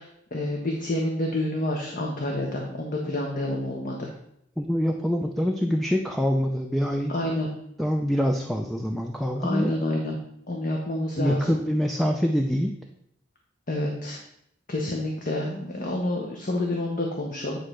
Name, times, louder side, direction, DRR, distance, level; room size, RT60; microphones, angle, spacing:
voice 1, 0.0-4.1 7.1-7.5 9.4-10.2 10.5-11.5 13.7-14.2 14.7-17.6, left 1 dB, 45° left, 0 dB, 1.1 m, -28 dB
voice 2, 4.6-7.1 7.8-9.7 11.2-12.7, equal, ahead, 2 dB, 0.5 m, -25 dB
9.6 x 3.3 x 6.2 m, 0.74 s
head